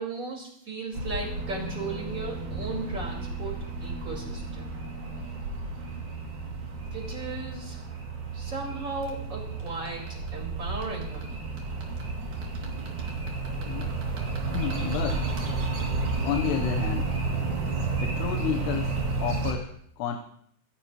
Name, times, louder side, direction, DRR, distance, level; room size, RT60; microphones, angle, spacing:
voice 1, 0.0-4.7 6.8-7.8 8.3-11.4 13.5-13.8, right 3 dB, 20° right, -1 dB, 4.8 m, -36 dB
sound 1, 0.9-19.5, right 3 dB, 50° right, 3.9 m, -32 dB
voice 2, 14.5-15.3 16.2-17.1 18.0-20.2, left 10 dB, 80° left, 5 dB, 3.0 m, -31 dB
24.5 x 16.0 x 3.1 m, 0.66 s
omnidirectional pair, 4.9 m